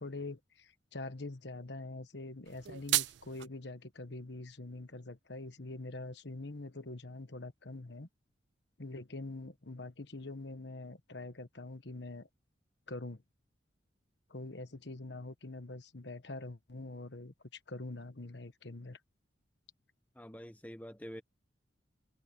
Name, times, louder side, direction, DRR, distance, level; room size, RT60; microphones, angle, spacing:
voice 1, 0.0-8.1 8.8-12.3 12.9-13.2 14.3-19.0, left 2 dB, 65° left, 1.3 m, -44 dB
sound 1, 2.4-3.5, right 17 dB, 65° right, 0.4 m, -33 dB
voice 2, 20.1-21.2, equal, 10° left, 1.3 m, -46 dB
head